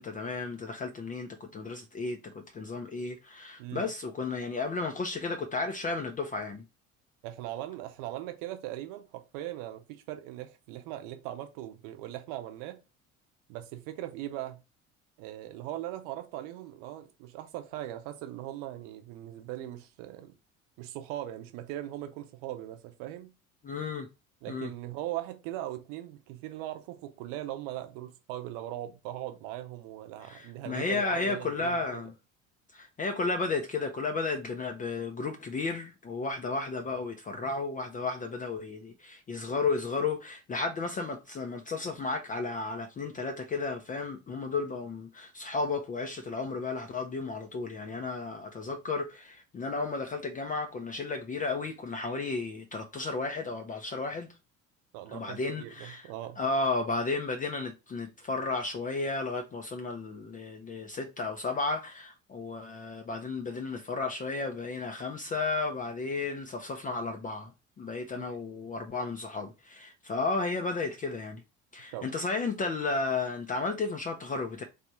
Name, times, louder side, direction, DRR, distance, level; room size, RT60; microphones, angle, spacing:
voice 1, 0.0-6.6 23.6-24.1 24.5-24.7 30.2-32.1 32.7-54.3 55.1-56.1 56.4-67.5 67.8-71.4 71.7-74.6, left 3 dB, 20° left, 0.5 m, -33 dB
voice 2, 3.6-3.9 7.2-12.8 13.5-14.6 15.2-20.4 20.8-23.3 24.4-32.1 54.9-56.4 68.2-68.4 71.9-72.1, right 13 dB, 55° right, 0.8 m, -40 dB
3.4 x 2.5 x 4.2 m
figure-of-eight pair, 60°, 40 cm